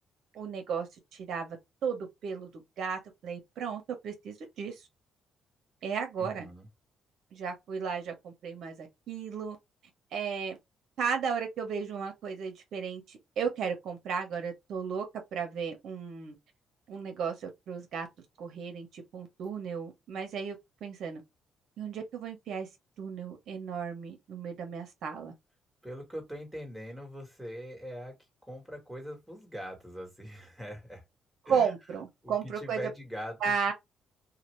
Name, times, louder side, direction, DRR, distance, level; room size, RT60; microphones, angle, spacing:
voice 1, 0.3-1.6 1.8-4.8 5.8-6.5 7.3-9.6 10.1-10.6 11.0-15.0 15.3-16.3 16.9-18.1 18.4-21.2 21.8-22.7 23.0-25.3 31.4-32.9 33.4-33.7, right 6 dB, 70° right, 1.1 m, -34 dB
voice 2, 6.2-6.7 25.8-28.1 28.4-31.0 31.4-31.7 32.2-33.5, equal, 5° right, 1.6 m, -42 dB
2.8 x 2.5 x 3.1 m
cardioid pair, 90°, 0 cm